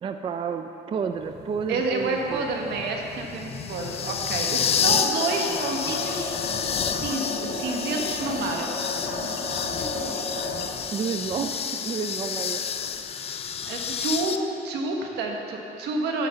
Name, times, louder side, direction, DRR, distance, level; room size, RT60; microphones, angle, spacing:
voice 1, 0.0-2.5 10.9-12.6 13.9-14.0, right 6 dB, 30° right, 7 dB, 0.4 m, -30 dB
sound 1, 1.2-14.4, left 7 dB, 35° left, 0.4 m, -30 dB
voice 2, 1.7-6.4 6.9-8.7 9.6-10.3 13.6-14.4 14.6-16.3, right 3 dB, 80° right, 1 dB, 1.3 m, -29 dB
sound 2, 4.7-10.6, left 2 dB, 85° left, 1.6 m, -33 dB
10.5 x 5.0 x 6.9 m, 2.9 s
cardioid pair, 110°, 17 cm